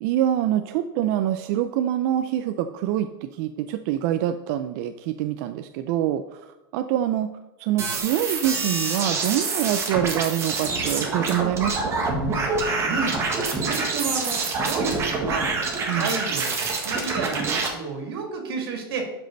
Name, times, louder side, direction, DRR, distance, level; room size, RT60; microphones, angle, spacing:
voice 1, 0.0-7.3 7.6-12.1 15.9-16.2, right 11 dB, 40° right, 9 dB, 0.4 m, -25 dB
sound 1, 7.8-17.7, right 3 dB, 20° right, 1.5 m, -26 dB
voice 2, 12.8-13.2 13.5-15.5 15.9-19.1, right 4 dB, 70° right, 3 dB, 2.5 m, -31 dB
11.5 x 5.3 x 3.9 m, 1.1 s
supercardioid pair, 155°, 13 cm